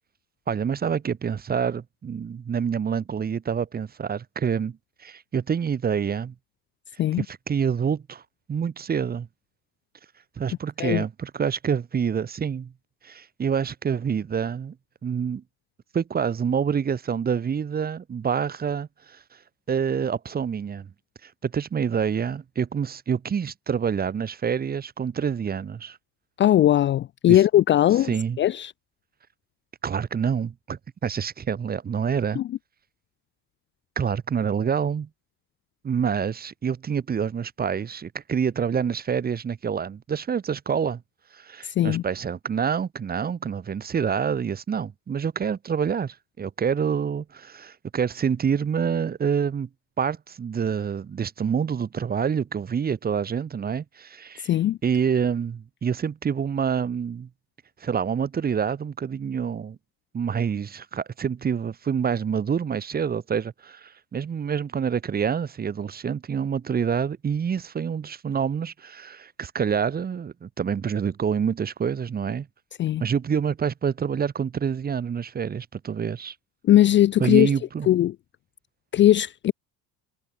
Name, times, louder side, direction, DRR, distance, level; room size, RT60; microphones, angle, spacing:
voice 1, 0.5-4.8 5.0-6.3 7.2-8.2 8.5-9.3 10.4-12.7 13.0-14.7 15.0-15.4 15.9-19.2 19.7-20.9 21.2-26.0 27.3-27.4 28.1-28.4 29.8-32.4 34.0-35.1 35.8-41.0 41.3-49.7 50.0-54.5 54.8-57.3 57.8-59.8 60.1-72.5 73.0-76.3 77.2-77.9, right 7 dB, 25° right, 1.5 m, -27 dB
voice 2, 26.4-28.1 28.4-28.7 32.4-32.5 41.6-42.0 54.4-54.8 72.8-73.0 76.6-77.5 77.9-78.1 78.9-79.5, left 12 dB, 35° left, 0.4 m, -19 dB
cardioid pair, 125°, 34 cm